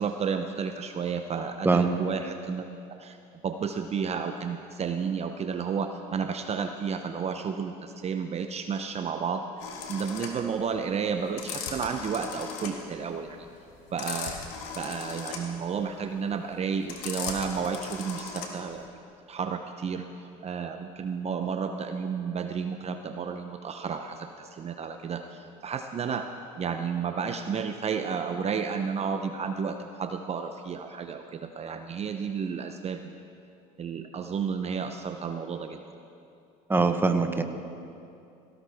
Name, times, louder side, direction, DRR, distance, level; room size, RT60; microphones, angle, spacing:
voice 1, 0.0-3.2 3.4-9.5 9.9-13.5 13.9-14.4 14.7-19.0 19.3-20.1 20.4-26.3 26.6-33.2 33.8-35.8, right 6 dB, 35° right, 7 dB, 0.7 m, -32 dB
voice 2, 1.6-2.0 36.7-37.4, right 3 dB, 10° right, 7 dB, 1.0 m, -23 dB
sound 1, 9.6-18.8, left 6 dB, 75° left, 2.0 m, -38 dB
17.5 x 17.0 x 3.5 m, 2.6 s
supercardioid pair, 85°, 18 cm